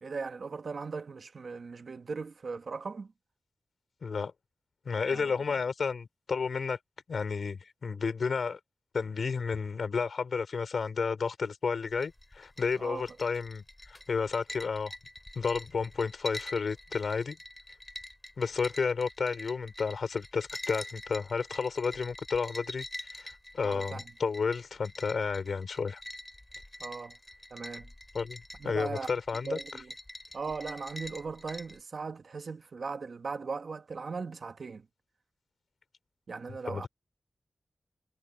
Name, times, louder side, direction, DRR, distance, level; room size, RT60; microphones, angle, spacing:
voice 1, 0.0-3.1 5.0-5.3 12.8-13.0 23.6-24.0 26.8-27.2 27.5-27.9 28.6-29.1 29.4-29.9 30.3-34.9 36.3-36.9, right 4 dB, 60° right, 1.5 m, -38 dB
voice 2, 4.0-4.3 4.8-6.8 7.1-8.6 8.9-14.9 15.3-17.4 18.4-22.9 23.1-26.0 28.1-29.6 36.6-36.9, left 5 dB, 70° left, 4.9 m, -32 dB
sound 1, 11.9-31.8, left 1 dB, 10° left, 4.1 m, -45 dB
wide cardioid pair, 140°, 0 cm